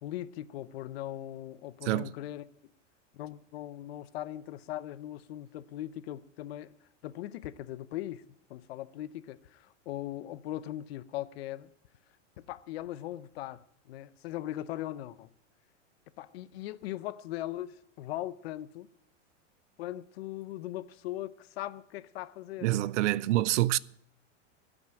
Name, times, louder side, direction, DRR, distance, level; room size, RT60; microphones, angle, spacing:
voice 1, 0.0-2.4 3.1-6.7 7.0-8.2 8.5-11.7 12.4-15.3 16.2-18.9 19.8-22.7, left 14 dB, 55° left, 0.7 m, -39 dB
voice 2, 22.6-23.8, right 16 dB, 70° right, 0.5 m, -26 dB
16.0 x 6.2 x 8.8 m
supercardioid pair, 155°, 37 cm